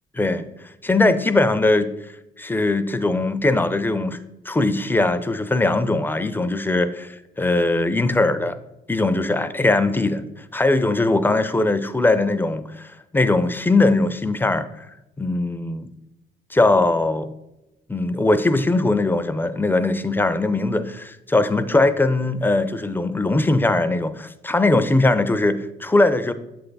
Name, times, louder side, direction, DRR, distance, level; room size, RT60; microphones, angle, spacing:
voice 1, 0.8-1.9 2.4-4.2 4.5-8.6 8.9-10.2 10.5-14.9 15.2-15.9 16.5-17.3 17.9-26.3, left 2 dB, 10° left, 0.4 m, -20 dB
7.6 x 3.4 x 4.0 m
cardioid pair, 90°, 20 cm